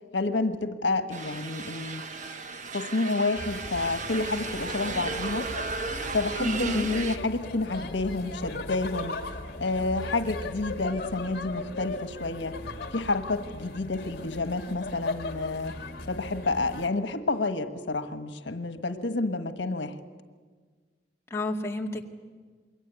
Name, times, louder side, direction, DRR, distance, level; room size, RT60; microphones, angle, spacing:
voice 1, 0.1-2.0 2.7-5.5 6.1-9.2 9.6-12.6 12.9-15.8 16.1-20.0, left 3 dB, 80° left, 9 dB, 1.4 m, -29 dB
sound 1, 1.1-7.2, right 4 dB, 45° right, 1.3 m, -35 dB
sound 2, 3.4-16.9, left 2 dB, 60° left, 2.2 m, -38 dB
voice 2, 6.4-6.9 21.3-22.1, left 2 dB, 15° left, 0 dB, 2.0 m, -29 dB
27.5 x 22.5 x 9.3 m, 1.5 s
head